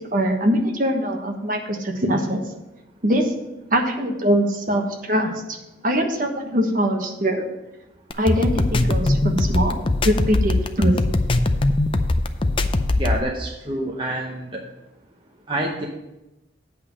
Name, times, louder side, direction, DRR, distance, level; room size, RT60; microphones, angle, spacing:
voice 1, 0.1-2.4 3.0-3.3 3.7-5.4 5.8-7.5 8.2-10.9, equal, 45° right, 3 dB, 1.2 m, -22 dB
sound 1, 8.1-13.2, left 2 dB, 30° left, 0.4 m, -20 dB
voice 2, 13.0-14.6 15.5-15.9, right 1 dB, 25° right, -1 dB, 0.8 m, -27 dB
8.5 x 5.5 x 7.2 m, 0.98 s
head